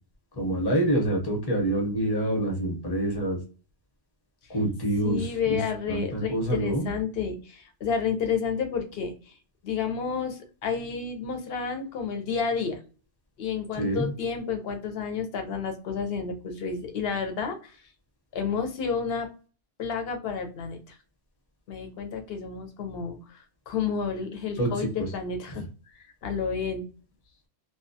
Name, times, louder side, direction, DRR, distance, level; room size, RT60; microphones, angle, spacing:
voice 1, 0.4-3.4 4.5-5.6 5.9-6.9 13.8-14.1 24.6-25.1, right 1 dB, 25° left, 0 dB, 0.7 m, -26 dB
voice 2, 5.0-9.4 9.6-12.8 13.4-17.8 18.3-19.3 19.8-21.0 21.7-25.7 25.9-26.9, left 6 dB, 65° left, 5 dB, 0.7 m, -30 dB
2.2 x 2.2 x 2.6 m, 0.35 s
omnidirectional pair, 1.3 m